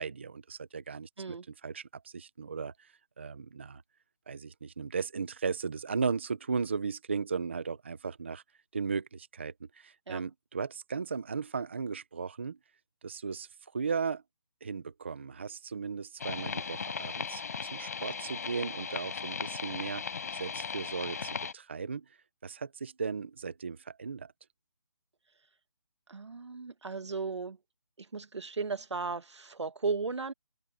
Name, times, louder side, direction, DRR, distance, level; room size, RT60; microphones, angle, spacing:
voice 1, 0.0-1.4 1.6-2.9 3.2-3.8 4.3-8.4 8.7-12.6 13.0-14.2 14.6-22.0 22.4-24.3, right 5 dB, 25° right, 0.7 m, -36 dB
sound 1, 16.2-21.5, left 6 dB, 35° left, 4.7 m, -37 dB
voice 2, 26.1-27.6 28.1-30.3, right 4 dB, 75° right, 2.0 m, -35 dB
open air
hypercardioid pair, 180°, 15 cm